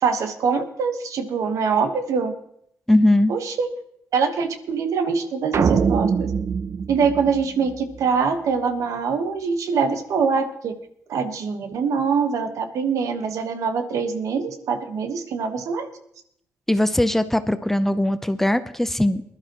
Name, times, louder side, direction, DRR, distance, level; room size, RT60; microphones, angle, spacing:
voice 1, 0.0-2.3 3.3-3.7 4.1-6.3 6.9-10.7 11.1-15.9, right 5 dB, 70° right, 8 dB, 1.3 m, -24 dB
voice 2, 2.9-3.3 16.7-19.2, left 1 dB, 5° left, 11 dB, 0.6 m, -20 dB
sound 1, 5.5-8.0, right 6 dB, 55° right, 0.6 m, -23 dB
20.0 x 12.0 x 3.0 m, 0.71 s
cardioid pair, 90°, 6 cm